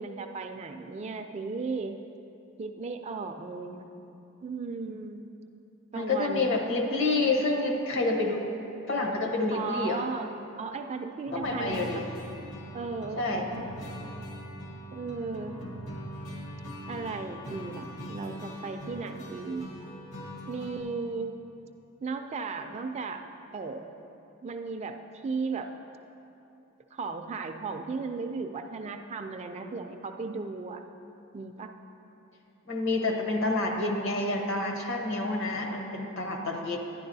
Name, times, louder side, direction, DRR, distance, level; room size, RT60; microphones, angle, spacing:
voice 1, 0.0-2.0 2.6-4.0 4.4-5.3 5.9-6.5 9.5-10.3 10.6-12.2 12.7-13.7 14.0-14.2 14.9-15.6 16.9-19.8 20.5-21.3 22.0-23.2 23.5-23.9 24.4-25.0 25.2-25.7 26.9-30.8 31.3-31.7, right 4 dB, 30° right, 6 dB, 0.3 m, -36 dB
voice 2, 5.9-8.5 8.9-10.0 11.3-12.0 13.2-13.5 32.7-36.8, left 2 dB, 60° left, 2 dB, 1.0 m, -28 dB
sound 1, 11.3-20.8, equal, 80° left, 1.4 m, -41 dB
11.5 x 9.8 x 2.7 m, 2.8 s
head